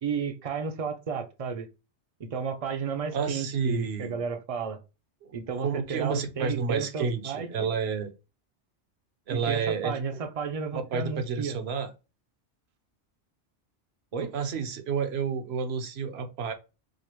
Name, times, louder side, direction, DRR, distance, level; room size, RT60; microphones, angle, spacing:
voice 1, 0.0-1.7 2.2-4.8 5.3-7.7 9.3-11.6 14.1-14.3, right 6 dB, 45° right, 0.4 m, -33 dB
voice 2, 3.1-4.2 5.6-8.1 9.3-10.0 10.7-11.9 14.3-16.5, right 6 dB, 65° right, 0.9 m, -30 dB
4.8 x 2.0 x 2.9 m
omnidirectional pair, 1.2 m